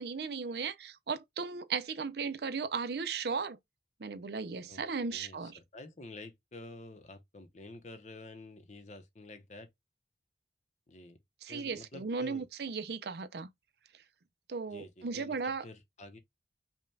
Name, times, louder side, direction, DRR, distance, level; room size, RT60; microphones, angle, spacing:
voice 1, 0.0-3.6 4.0-5.6 11.4-13.5 14.5-15.6, right 5 dB, 60° right, 0.5 m, -36 dB
voice 2, 5.1-9.7 10.9-11.2 11.5-12.4 14.7-16.2, left 2 dB, 40° left, 0.8 m, -49 dB
5.3 x 2.3 x 3.3 m
head